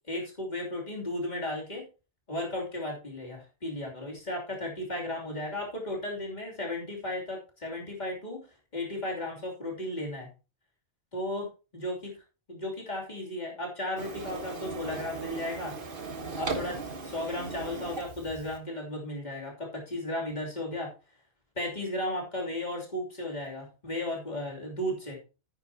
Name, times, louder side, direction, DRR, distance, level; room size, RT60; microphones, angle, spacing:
voice 1, 0.1-1.8 2.3-8.5 8.7-10.3 11.1-11.5 11.7-12.0 12.5-15.7 16.4-20.9 21.5-25.2, left 1 dB, 40° left, -1 dB, 3.1 m, -35 dB
Printer, 14.0-18.6, right 3 dB, 50° right, 1.4 m, -37 dB
10.5 x 9.3 x 2.8 m, 0.32 s
omnidirectional pair, 1.2 m